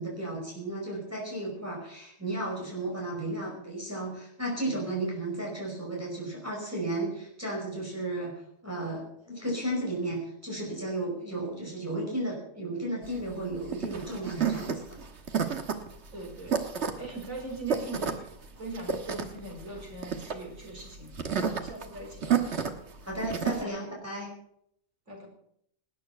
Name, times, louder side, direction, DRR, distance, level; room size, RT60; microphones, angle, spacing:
voice 1, 0.0-8.3 8.6-14.8 23.0-24.3, right 1 dB, 10° right, -3 dB, 5.1 m, -34 dB
sound 1, 13.0-23.6, right 7 dB, 60° right, 1.6 m, -31 dB
voice 2, 16.1-16.6 17.0-18.3 18.6-22.5 23.5-23.8 25.1-25.3, right 2 dB, 90° right, 0 dB, 5.0 m, -40 dB
19.0 x 9.4 x 5.9 m, 0.72 s
omnidirectional pair, 1.3 m